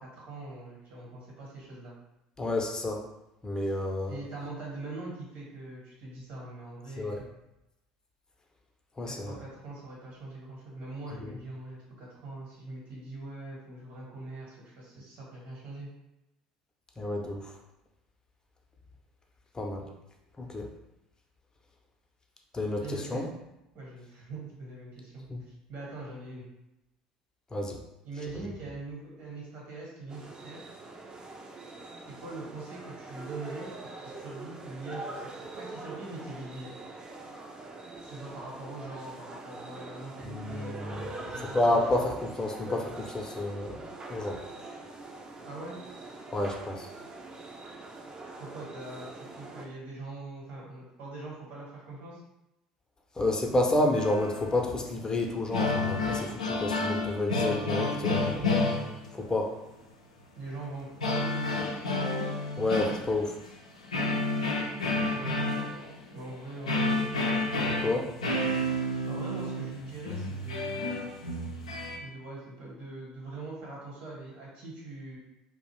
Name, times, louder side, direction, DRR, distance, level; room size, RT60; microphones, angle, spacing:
voice 1, 0.0-1.9 4.1-7.3 9.1-15.9 22.8-23.2 23.7-25.2 25.7-26.5 28.0-30.6 32.1-33.7 34.0-36.7 38.0-42.0 45.4-45.8 48.4-52.2 60.3-60.9 61.2-61.6 65.1-65.6 66.1-67.5 69.1-71.1 72.0-75.2, right 2 dB, 60° right, -4 dB, 1.1 m, -42 dB
voice 2, 2.4-3.0 3.4-4.2 7.0-7.2 9.0-9.4 11.2-11.3 17.0-17.5 19.5-19.9 20.4-20.7 22.5-23.3 25.3-25.4 27.5-27.8 40.2-41.0 41.4-43.8 44.1-44.4 46.3-46.9 53.2-58.4 59.1-59.5 62.6-63.4 67.8-68.1, left 2 dB, 20° left, 2 dB, 0.5 m, -30 dB
sound 1, 30.1-49.7, right 2 dB, 25° right, 0.5 m, -43 dB
sound 2, 53.9-55.1 55.3-59.4 61.0-63.5 63.9-72.0, left 2 dB, 85° left, 0.3 m, -30 dB
2.4 x 2.1 x 3.1 m, 0.90 s
hypercardioid pair, 65°, 3 cm